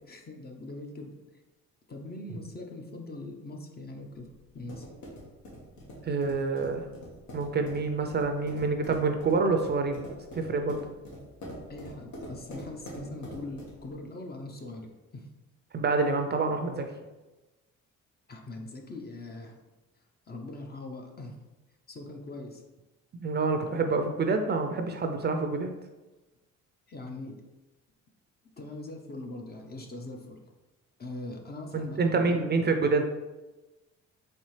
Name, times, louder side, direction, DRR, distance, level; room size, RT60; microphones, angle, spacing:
voice 1, 0.0-1.2 1.9-4.3 4.5-4.9 11.7-15.3 18.3-19.6 20.3-21.4 21.9-22.6 26.9-27.4 28.6-30.4 31.0-32.4, left 2 dB, 30° left, 3 dB, 0.7 m, -41 dB
sound 1, 4.1-13.9, equal, 75° left, 1.3 m, -45 dB
voice 2, 6.0-6.9 7.3-10.0 10.4-10.8 15.7-16.8 23.1-25.7 31.7-33.0, right 4 dB, 35° right, 5 dB, 0.4 m, -27 dB
4.2 x 3.3 x 3.2 m, 1.1 s
cardioid pair, 90°, 30 cm